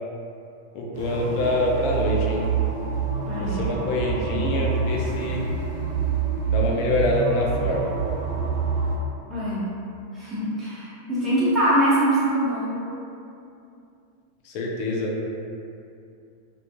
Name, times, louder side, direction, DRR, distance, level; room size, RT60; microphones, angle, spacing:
voice 1, 0.7-2.5 3.4-5.5 6.5-7.9 14.4-15.2, left 2 dB, 45° left, -2 dB, 0.4 m, -25 dB
sound 1, 0.9-8.9, right 6 dB, 65° right, 1.0 m, -26 dB
voice 2, 3.2-3.6 9.3-9.7 10.1-12.9, right 1 dB, 10° right, -13 dB, 0.9 m, -23 dB
2.5 x 2.4 x 2.5 m, 2.6 s
figure-of-eight pair, 90°, 0 cm